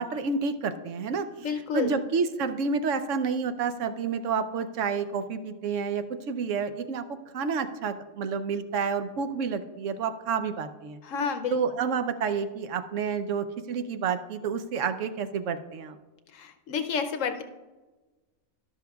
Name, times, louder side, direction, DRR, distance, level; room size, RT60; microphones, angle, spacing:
voice 1, 0.0-1.3 1.7-7.0 7.3-11.0 11.5-16.0, right 5 dB, 65° right, 10 dB, 1.0 m, -29 dB
voice 2, 1.4-1.9 11.0-11.6 16.3-17.4, left 6 dB, 65° left, 8 dB, 1.0 m, -30 dB
12.0 x 11.5 x 2.3 m, 1.2 s
omnidirectional pair, 1.5 m